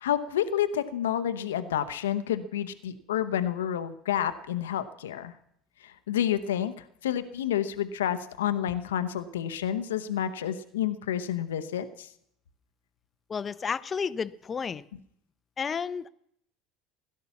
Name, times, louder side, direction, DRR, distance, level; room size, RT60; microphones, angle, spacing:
voice 1, 0.0-5.3 5.8-6.7 7.0-12.1, left 10 dB, 75° left, 10 dB, 0.8 m, -29 dB
voice 2, 13.3-14.9 15.6-16.1, left 6 dB, 30° left, 16 dB, 0.7 m, -31 dB
16.5 x 11.5 x 7.0 m, 0.72 s
figure-of-eight pair, 70°, 0 cm